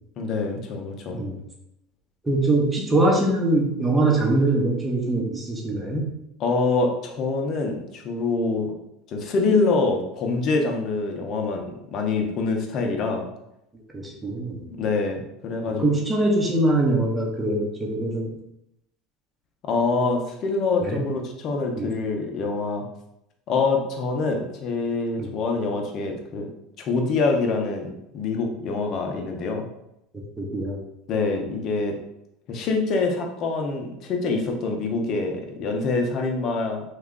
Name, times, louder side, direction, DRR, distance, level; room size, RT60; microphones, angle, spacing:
voice 1, 0.2-1.2 6.4-8.7 9.1-13.3 14.7-15.9 19.6-22.8 23.5-26.5 26.8-29.7 31.1-31.9 32.5-36.8, left 3 dB, 50° left, 2 dB, 0.7 m, -25 dB
voice 2, 2.2-6.1 13.9-14.6 15.8-18.3 20.8-21.0 21.7-21.9 25.2-25.3 30.4-30.8, right 2 dB, 15° right, -1 dB, 0.8 m, -23 dB
3.1 x 2.3 x 3.7 m, 0.82 s
supercardioid pair, 105°, 0 cm